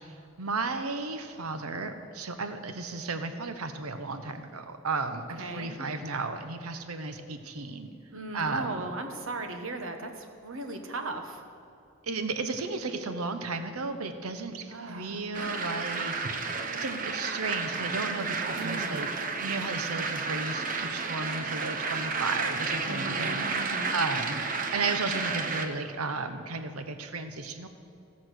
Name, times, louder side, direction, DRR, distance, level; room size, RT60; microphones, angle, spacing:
voice 1, 0.1-7.9 8.3-8.8 12.0-19.1 19.4-23.4 23.9-24.4 24.7-27.7, right 3 dB, 85° right, 8 dB, 0.9 m, -34 dB
voice 2, 5.4-5.7 8.1-11.4 14.7-15.2 18.5-19.0 22.8-24.0, right 2 dB, 70° right, 5 dB, 1.2 m, -37 dB
sound 1, 15.3-25.7, right 4 dB, 40° right, 0.8 m, -32 dB
17.0 x 6.2 x 6.3 m, 2.5 s
head